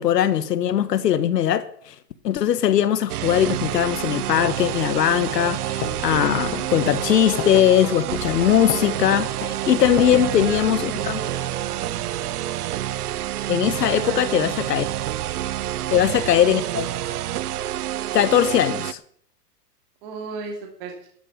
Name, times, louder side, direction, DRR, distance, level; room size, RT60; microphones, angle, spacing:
voice 1, 0.0-1.9 2.2-11.2 13.5-14.8 15.9-16.9 18.1-19.0, left 10 dB, 85° left, 1.6 m, -20 dB
sound 1, 3.1-18.9, right 13 dB, 70° right, 0.8 m, -28 dB
sound 2, 5.3-5.5 5.8-10.2, left 9 dB, 15° left, 0.7 m, -32 dB
voice 2, 9.9-11.8 13.9-14.8 15.8-16.2 20.0-21.1, right 4 dB, 35° right, 3.0 m, -36 dB
12.5 x 11.0 x 6.8 m
supercardioid pair, 170°, 48 cm